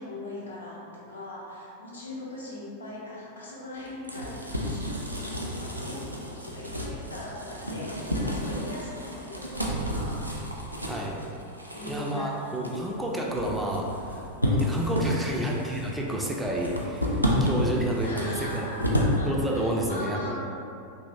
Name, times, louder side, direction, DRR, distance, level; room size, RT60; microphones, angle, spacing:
voice 1, 0.0-10.2 11.7-12.4 15.2-15.5 18.0-20.4, left 1 dB, 75° left, -6 dB, 0.6 m, -40 dB
sound 1, 3.7-19.2, left 1 dB, 90° right, 0.3 m, -31 dB
sound 2, 9.5-11.8, right 3 dB, 70° right, 0.9 m, -39 dB
voice 2, 10.9-11.2 11.8-19.0 19.2-20.4, right 1 dB, 5° right, -2 dB, 0.3 m, -30 dB
2.9 x 2.6 x 2.4 m, 2.5 s
figure-of-eight pair, 90°, 0 cm